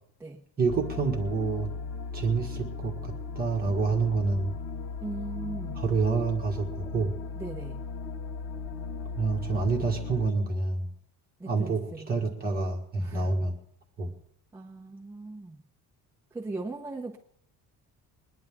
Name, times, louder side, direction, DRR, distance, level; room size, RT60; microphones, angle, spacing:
voice 1, 0.6-1.7 2.1-4.5 5.8-7.1 9.2-10.9 11.4-13.5 14.0-14.1, right 4 dB, 25° right, 0 dB, 2.0 m, -28 dB
sound 1, 0.7-10.3, left 4 dB, 85° left, 1.7 m, -37 dB
voice 2, 5.0-5.8 7.3-7.8 11.4-12.1 13.0-13.3 14.5-15.6 16.3-17.2, right 2 dB, 5° right, -3 dB, 1.1 m, -39 dB
22.5 x 10.5 x 3.7 m, 0.69 s
cardioid pair, 175°, 35 cm